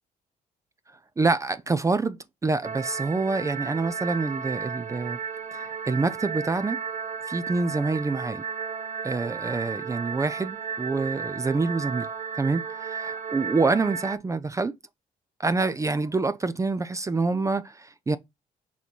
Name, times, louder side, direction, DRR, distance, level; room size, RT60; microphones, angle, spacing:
voice 1, 1.2-5.2 5.5-6.8 7.3-8.4 9.0-12.1 12.4-14.8 15.4-18.2, right 3 dB, 20° right, 0.5 m, -26 dB
sound 1, 2.6-14.2, right 6 dB, 50° right, 0.9 m, -34 dB
6.2 x 3.0 x 5.4 m
cardioid pair, 90°, 15 cm